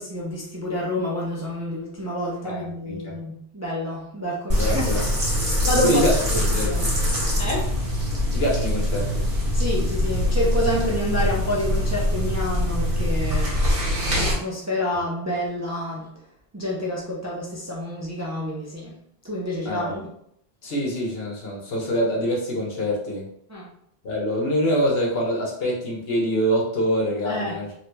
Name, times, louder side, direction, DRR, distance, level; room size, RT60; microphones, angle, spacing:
voice 1, 0.0-5.2 5.6-6.1 6.3-7.0 7.4-7.7 9.5-16.2 16.5-19.0 19.2-20.1 23.5-23.7 27.2-27.6, left 1 dB, 25° right, -4 dB, 0.4 m, -28 dB
voice 2, 2.4-3.1 4.6-5.0 5.8-6.7 8.3-9.3 19.6-20.0 20.6-23.3 24.0-27.7, equal, 70° left, -3 dB, 1.1 m, -25 dB
sound 1, 4.5-14.3, left 1 dB, 60° right, 1.3 m, -23 dB
3.2 x 3.0 x 2.2 m, 0.71 s
omnidirectional pair, 1.1 m